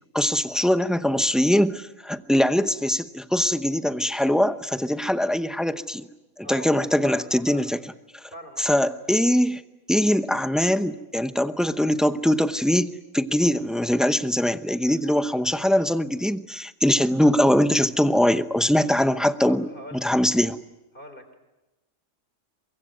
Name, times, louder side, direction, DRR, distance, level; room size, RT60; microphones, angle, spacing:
voice 1, 0.1-6.1 6.4-7.8 8.6-9.6 9.9-20.6, left 1 dB, ahead, 11 dB, 0.6 m, -22 dB
voice 2, 6.4-7.7 8.3-8.8 14.8-15.0 18.8-19.1 19.4-20.1 20.9-21.4, equal, 45° left, 8 dB, 3.7 m, -43 dB
23.5 x 23.5 x 9.3 m, 1.0 s
omnidirectional pair, 1.3 m